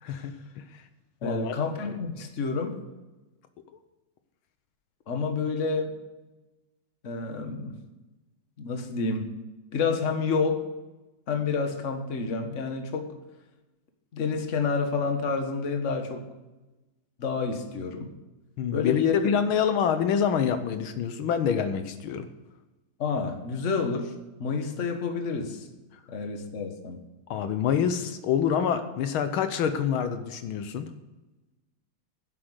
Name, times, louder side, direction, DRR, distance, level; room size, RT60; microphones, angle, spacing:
voice 1, 0.0-0.6 1.2-1.6 18.6-22.3 27.3-30.8, left 7 dB, 80° left, 9 dB, 1.7 m, -26 dB
voice 2, 1.2-2.8 5.1-6.0 7.0-7.7 8.6-9.3 9.7-10.7 11.3-13.1 14.1-16.3 17.2-18.1 18.7-19.4 23.0-24.1 24.4-25.7 26.1-27.0, left 4 dB, 40° left, 5 dB, 1.5 m, -29 dB
10.0 x 7.9 x 8.0 m, 1.1 s
omnidirectional pair, 2.3 m